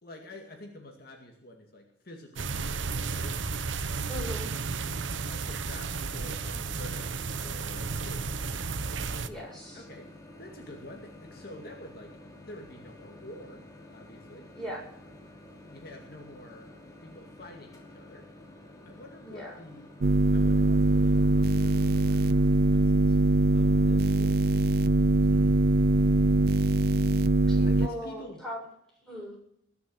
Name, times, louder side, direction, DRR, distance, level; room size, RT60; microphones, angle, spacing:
voice 1, 0.0-3.5 5.2-8.6 9.7-10.1 10.4-14.5 15.7-18.3 18.8-19.9 20.3-23.2 23.5-24.8 25.2-25.7 26.9-27.2 27.6-28.4, left 1 dB, 55° left, 2 dB, 2.3 m, -48 dB
sound 1, 2.4-9.3, right 4 dB, 85° right, 0.9 m, -33 dB
voice 2, 4.1-4.5 9.2-9.8 14.6-14.8 19.2-19.6 27.5-28.6 29.0-29.4, equal, 5° left, -4 dB, 7.4 m, -39 dB
Microwave oven, 6.3-22.6, left 1 dB, 20° left, 2.8 m, -50 dB
sound 2, 20.0-27.9, right 2 dB, 55° right, 0.5 m, -22 dB
21.0 x 7.2 x 7.7 m, 0.70 s
head